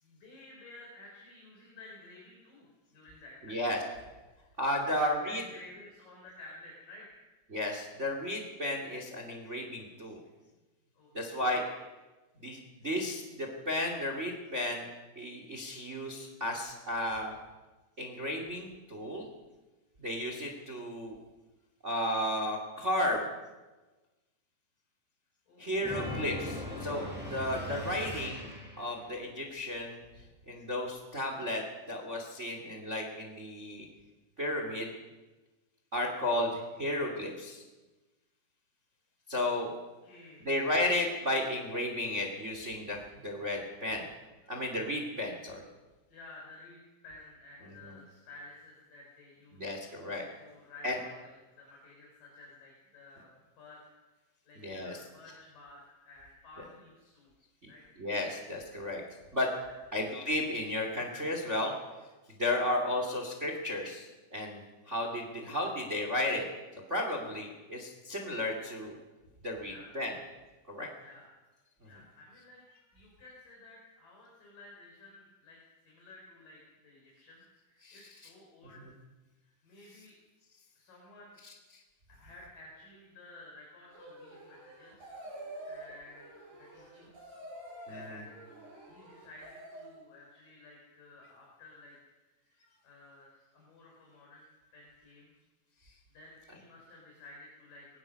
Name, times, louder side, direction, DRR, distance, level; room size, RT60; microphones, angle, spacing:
voice 1, 0.0-3.7 4.3-4.5 4.8-7.3 10.9-11.9 25.5-26.2 27.9-28.3 40.0-40.5 43.9-44.1 44.4-44.6 46.1-49.8 50.4-53.3 53.6-53.8 54.5-57.3 57.7-57.9 59.6-59.8 69.6-69.9 71.0-71.3 71.8-72.6 72.9-78.9 79.4-80.1 80.8-81.4 82.1-85.0 85.7-86.3 86.6-87.4 87.9-88.3 88.9-92.0 92.4-92.6 92.8-94.4 94.7-95.3 96.1-98.0, left 2 dB, 50° left, -3 dB, 6.1 m, -53 dB
voice 2, 3.5-3.8 4.6-5.4 7.5-10.2 11.1-11.6 12.4-14.9 15.2-17.3 18.0-19.3 20.0-21.2 21.8-23.2 25.6-27.0 27.3-28.4 28.8-30.0 30.5-33.8 34.4-34.9 35.9-37.6 39.3-39.7 40.4-43.0 43.2-44.1 44.5-45.6 47.8-47.9 49.5-50.2 50.8-51.0 54.6-55.0 58.0-59.0 59.3-59.5 59.9-61.7 62.4-66.4 66.9-69.0 69.4-70.1 70.7-70.9 77.8-78.0 87.9-88.2, left 1 dB, 20° right, 3 dB, 2.0 m, -33 dB
sound 1, 25.8-29.0, left 1 dB, ahead, 6.2 m, -39 dB
sound 2, 83.9-90.1, right 1 dB, 70° right, 7.7 m, -48 dB
22.0 x 18.5 x 6.4 m, 1.2 s
omnidirectional pair, 4.9 m